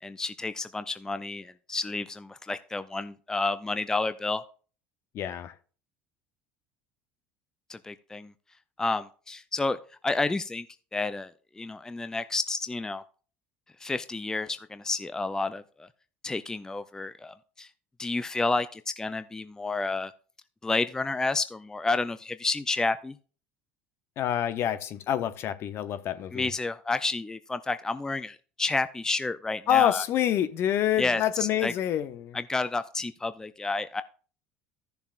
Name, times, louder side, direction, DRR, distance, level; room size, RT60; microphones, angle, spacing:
voice 1, 0.0-4.4 7.7-8.3 8.8-9.8 10.0-10.7 10.9-11.3 11.6-13.0 13.8-15.9 16.2-17.7 18.0-20.1 20.6-23.2 26.3-30.0 31.0-31.7 32.3-34.0, left 3 dB, 10° left, 0.4 m, -30 dB
voice 2, 5.1-5.5 24.2-26.5 29.7-32.4, left 11 dB, 55° left, 0.8 m, -27 dB
14.5 x 6.9 x 2.5 m
hypercardioid pair, 80°, 5 cm